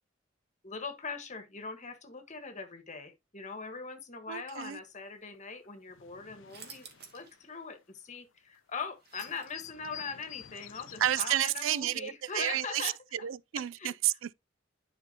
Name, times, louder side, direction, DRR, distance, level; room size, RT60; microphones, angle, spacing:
voice 1, 0.6-6.9 7.1-12.9 13.5-13.9, left 5 dB, 40° left, 1.5 m, -41 dB
voice 2, 4.3-4.8 11.0-12.9 13.2-14.3, right 12 dB, 80° right, 0.4 m, -31 dB
sound 1, 5.3-5.4 5.6-8.2 8.6-8.7 8.9-11.7, left 12 dB, 75° left, 0.5 m, -49 dB
sound 2, 6.5-7.4 7.8-7.9 8.5-9.9, right 6 dB, 55° right, 2.0 m, -51 dB
10.5 x 5.1 x 2.9 m
head